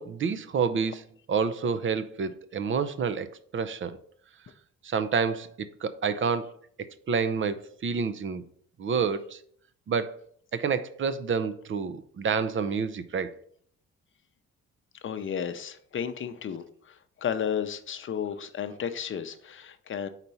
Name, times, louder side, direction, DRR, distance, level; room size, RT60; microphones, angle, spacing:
voice 1, 0.0-4.0 4.8-8.4 8.8-9.4 9.9-10.2 10.5-13.3, right 5 dB, 40° right, 0.6 m, -29 dB
voice 2, 15.0-20.1, left 8 dB, 40° left, 0.7 m, -33 dB
4.4 x 4.1 x 5.4 m
cardioid pair, 90°, 30 cm